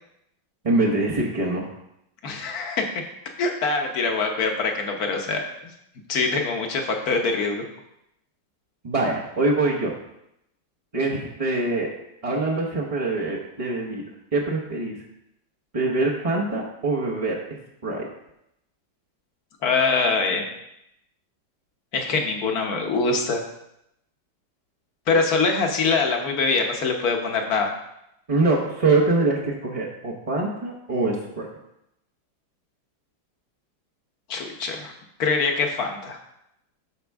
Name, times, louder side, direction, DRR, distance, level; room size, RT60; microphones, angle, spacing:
voice 1, 0.6-1.7 8.8-9.9 10.9-11.9 12.2-14.0 14.3-15.0 15.7-17.4 17.8-18.1 28.3-31.5, right 2 dB, 30° right, -5 dB, 0.6 m, -24 dB
voice 2, 2.2-2.8 3.4-5.7 6.1-7.6 19.6-20.5 21.9-23.5 25.1-27.7 34.3-34.9 35.2-36.2, left 4 dB, 60° left, 3 dB, 1.4 m, -24 dB
12.0 x 4.5 x 3.5 m, 0.81 s
omnidirectional pair, 2.0 m